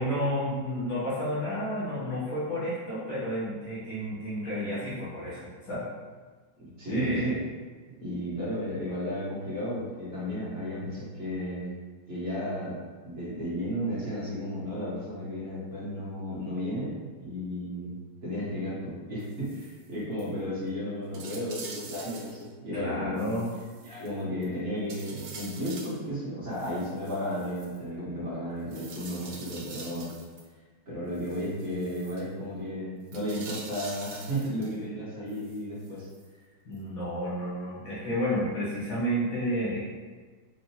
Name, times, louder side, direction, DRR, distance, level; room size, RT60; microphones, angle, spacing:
voice 1, 0.0-5.9 6.9-7.4 22.7-23.5 36.6-39.9, equal, 80° left, -10 dB, 2.5 m, -31 dB
voice 2, 6.6-7.4 8.0-11.7 12.1-17.9 18.2-23.4 23.8-30.1 30.9-36.1, equal, 35° right, -9 dB, 1.4 m, -33 dB
sound 1, 19.2-19.9 20.2-20.3 20.7-20.8 21.1-22.5 23.2-24.5 24.9-26.0 26.5-27.8 28.7-30.4 31.1-32.2 33.1-34.8 35.3-36.3 36.7-36.8, right 4 dB, 75° right, 0.7 m, -45 dB
5.6 x 2.6 x 2.8 m, 1.4 s
omnidirectional pair, 2.2 m